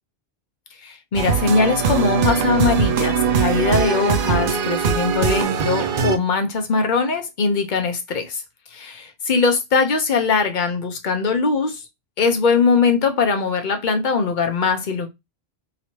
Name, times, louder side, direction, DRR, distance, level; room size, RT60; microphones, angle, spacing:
voice 1, 0.8-8.4 8.7-11.8 12.2-15.1, left 4 dB, 50° left, 0.8 m, -21 dB
sound 1, 1.2-6.2, right 6 dB, 65° right, 0.7 m, -21 dB
3.0 x 2.8 x 3.0 m
omnidirectional pair, 1.1 m